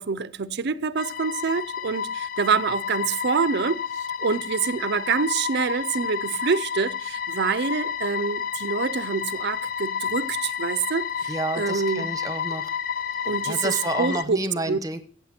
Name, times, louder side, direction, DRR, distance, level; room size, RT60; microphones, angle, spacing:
voice 1, 0.0-3.8 4.2-12.1 13.2-14.4 14.7-14.8, right 5 dB, 60° right, 0.5 m, -26 dB
sound 1, 1.0-14.2, left 7 dB, 45° left, 0.5 m, -30 dB
voice 2, 11.3-12.7 13.4-15.0, right 2 dB, 20° right, 1.0 m, -30 dB
14.5 x 8.3 x 4.3 m
head